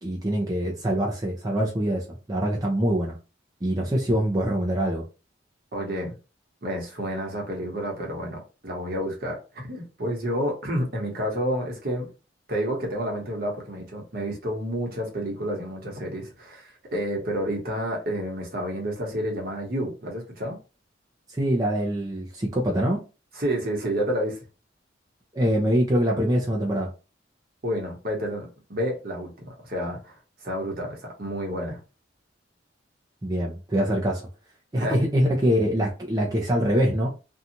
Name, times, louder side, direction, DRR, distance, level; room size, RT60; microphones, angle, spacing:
voice 1, 0.0-3.2 3.6-5.0 21.3-23.0 25.3-26.9 33.2-34.2 34.7-37.1, equal, 20° right, 0.5 m, -24 dB
voice 2, 5.7-6.1 6.6-12.1 12.5-20.6 23.3-24.4 27.6-30.2 30.4-31.8 34.8-35.0, equal, 55° right, 1.0 m, -30 dB
2.6 x 2.3 x 2.8 m
head